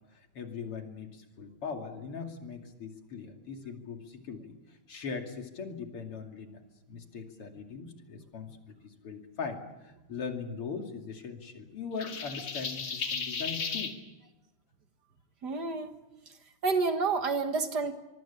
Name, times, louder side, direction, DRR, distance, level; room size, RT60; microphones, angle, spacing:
voice 1, 0.0-6.6 6.9-13.9, left 5 dB, 85° left, 3 dB, 3.6 m, -40 dB
sound 1, 12.0-13.9, left 5 dB, 65° left, 3.0 m, -35 dB
voice 2, 15.4-15.9 16.6-17.9, right 4 dB, 50° right, 7 dB, 2.0 m, -29 dB
24.0 x 24.0 x 7.2 m, 1.0 s
omnidirectional pair, 2.4 m